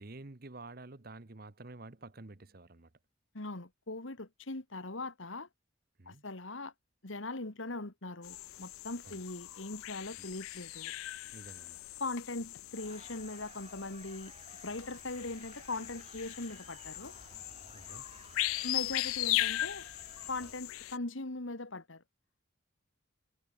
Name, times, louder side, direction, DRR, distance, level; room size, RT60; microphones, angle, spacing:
voice 1, 0.0-2.9 6.0-6.2 9.0-9.2 10.2-10.3 11.3-11.8 17.7-18.1, right 2 dB, 45° right, 1.1 m, -49 dB
voice 2, 3.3-5.5 6.1-6.7 7.0-10.9 12.0-14.3 14.6-17.1 18.6-19.8 20.3-22.0, left 2 dB, 75° left, 2.0 m, -40 dB
sound 1, 8.2-21.0, left 17 dB, 90° left, 0.3 m, -39 dB
sound 2, 12.8-20.5, right 3 dB, 30° right, 7.9 m, -56 dB
head